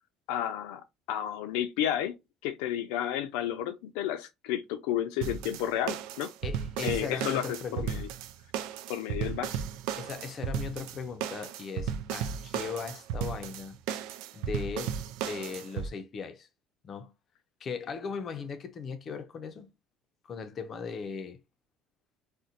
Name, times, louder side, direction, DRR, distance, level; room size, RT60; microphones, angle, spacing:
voice 1, 0.3-2.2 2.4-6.3 6.8-8.1 8.9-9.6, left 11 dB, 85° left, 0.5 m, -32 dB
sound 1, 5.2-15.9, right 8 dB, 80° right, 0.4 m, -35 dB
voice 2, 6.4-8.0 10.0-13.8 14.3-15.0 15.2-16.5 16.8-17.1 17.6-19.7 20.2-21.4, left 5 dB, 40° left, 0.6 m, -38 dB
4.1 x 2.2 x 2.5 m
cardioid pair, 125°, 0 cm